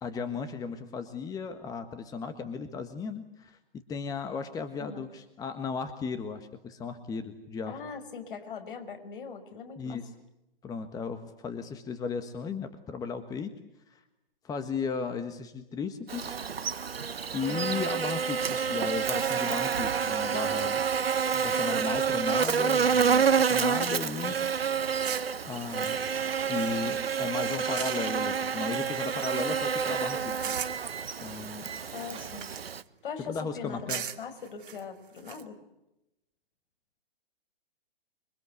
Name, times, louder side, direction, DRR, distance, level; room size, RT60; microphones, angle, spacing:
voice 1, 0.0-7.8 9.8-10.1 10.6-13.5 13.9-14.0 14.4-16.3 17.3-20.8 21.3-24.4 25.4-26.0 26.4-30.6 31.2-31.7 33.3-34.0, left 5 dB, 10° left, 9 dB, 1.5 m, -35 dB
voice 2, 7.7-10.0 17.5-17.8 31.9-32.5 33.0-35.6, left 6 dB, 60° left, 6 dB, 6.0 m, -41 dB
Buzz, 16.1-32.8, right 6 dB, 80° right, 1.3 m, -28 dB
sound 1, 18.4-21.6 22.4-22.7 23.0-24.2 25.0-27.3 27.8-28.2 28.6-29.7 30.4-30.9 31.6-32.9 33.9-35.4, right 9 dB, 60° right, 2.7 m, -42 dB
sound 2, 24.2-32.8, right 7 dB, 15° right, 3.2 m, -50 dB
27.0 x 23.5 x 8.3 m, 0.91 s
figure-of-eight pair, 130°, 30 cm